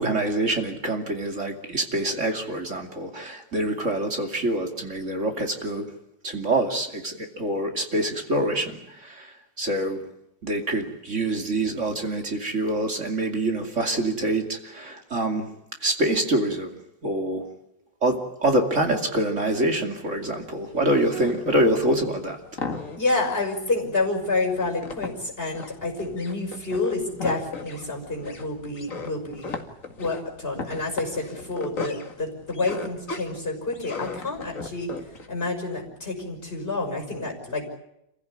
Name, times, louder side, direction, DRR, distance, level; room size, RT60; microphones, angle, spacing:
voice 1, 0.0-5.9 6.2-10.0 10.4-15.5 15.8-16.7 17.0-17.5 18.0-22.4, right 1 dB, 40° right, 4 dB, 2.8 m, -25 dB
sound 1, 20.0-35.3, left 3 dB, 45° left, 2.5 m, -37 dB
voice 2, 23.0-29.5 30.0-34.9 35.3-37.7, left 2 dB, 30° left, 2 dB, 6.2 m, -28 dB
27.5 x 16.0 x 9.9 m, 0.81 s
omnidirectional pair, 2.0 m